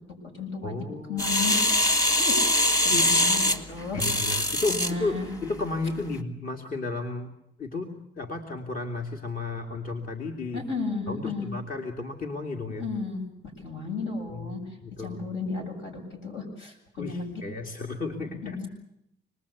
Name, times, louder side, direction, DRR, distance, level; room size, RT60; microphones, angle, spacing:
voice 1, 0.1-1.6 1.9-5.3 10.5-11.5 12.8-13.2 13.6-14.6 15.0-17.4 18.2-18.7, left 4 dB, 75° left, 3 dB, 7.9 m, -34 dB
voice 2, 0.6-1.3 2.9-3.2 3.9-5.2 5.4-7.3 7.6-10.6 11.1-12.9 14.3-15.2 17.0-18.6, left 3 dB, 45° left, 3 dB, 2.5 m, -33 dB
sound 1, 1.2-4.9 5.5-5.6, left 1 dB, 15° left, 2.0 m, -23 dB
26.5 x 20.5 x 8.5 m, 0.78 s
cardioid pair, 90°, 20 cm